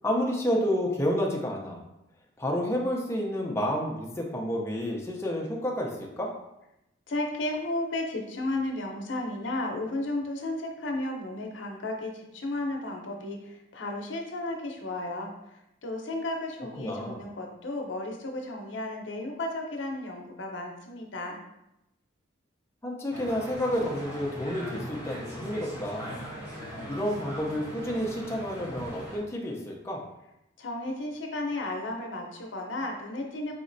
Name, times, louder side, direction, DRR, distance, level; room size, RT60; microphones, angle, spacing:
voice 1, 0.0-1.8 2.4-6.3 16.8-17.2 22.8-26.2 26.9-30.0, equal, 15° left, -1 dB, 0.5 m, -30 dB
voice 2, 7.1-15.3 15.8-21.4 30.6-33.5, left 2 dB, 70° left, 2 dB, 0.7 m, -33 dB
sound 1, 23.1-29.2, equal, 15° right, 1.2 m, -40 dB
5.0 x 3.1 x 2.6 m, 0.87 s
head